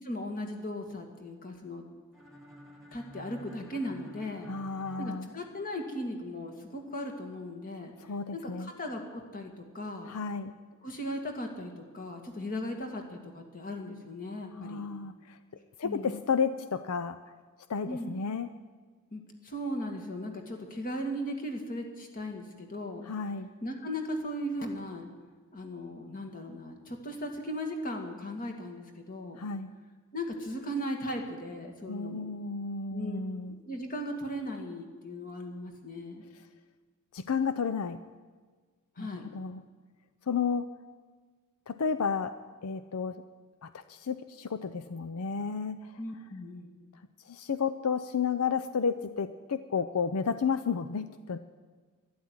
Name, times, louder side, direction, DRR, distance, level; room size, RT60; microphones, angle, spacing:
voice 1, 0.0-1.8 2.9-4.5 5.0-7.9 8.3-10.1 10.8-14.9 15.8-16.2 17.9-18.2 19.1-23.0 23.6-25.1 25.5-29.4 30.1-32.3 32.9-33.2 33.5-36.2 39.0-39.3 46.0-46.7, equal, 40° left, 3 dB, 2.2 m, -37 dB
sound 1, 2.1-6.0, left 1 dB, ahead, 2.5 m, -51 dB
voice 2, 4.5-5.3 8.1-8.7 10.1-10.5 14.6-15.4 15.8-17.2 17.7-18.5 23.1-23.5 29.4-29.7 31.9-33.6 37.1-38.0 39.0-39.1 39.3-39.6 40.3-40.7 41.7-42.3 42.6-43.2 43.6-45.9 47.3-51.4, left 5 dB, 85° left, 10 dB, 0.6 m, -32 dB
12.0 x 12.0 x 9.5 m, 1.4 s
head